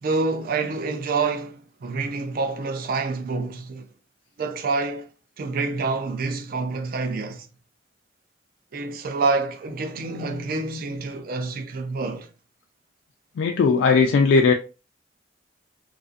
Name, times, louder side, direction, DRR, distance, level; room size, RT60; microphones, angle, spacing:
voice 1, 0.0-3.9 4.4-5.1 5.4-7.5 8.7-12.3, right 3 dB, 50° right, 0.4 m, -27 dB
voice 2, 13.4-14.5, left 4 dB, 85° left, 0.3 m, -18 dB
2.5 x 2.4 x 2.3 m
head